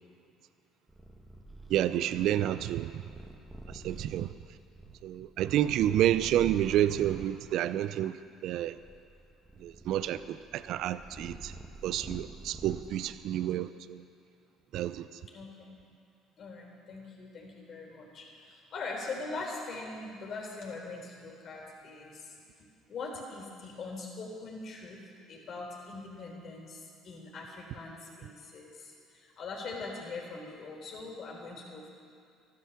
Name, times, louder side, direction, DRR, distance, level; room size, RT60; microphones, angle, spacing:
Purr, 0.9-7.4 8.1-13.3, right 2 dB, 5° right, 1.8 m, -48 dB
voice 1, 1.7-2.9 3.7-4.3 5.0-8.2 8.4-8.8 9.6-11.5 11.8-14.0 14.7-15.1, right 12 dB, 70° right, 14 dB, 0.5 m, -29 dB
voice 2, 15.3-15.8 16.4-25.0 25.3-31.9, left 3 dB, 55° left, -1 dB, 3.9 m, -42 dB
13.5 x 11.5 x 7.2 m, 2.5 s
supercardioid pair, 75°, 0 cm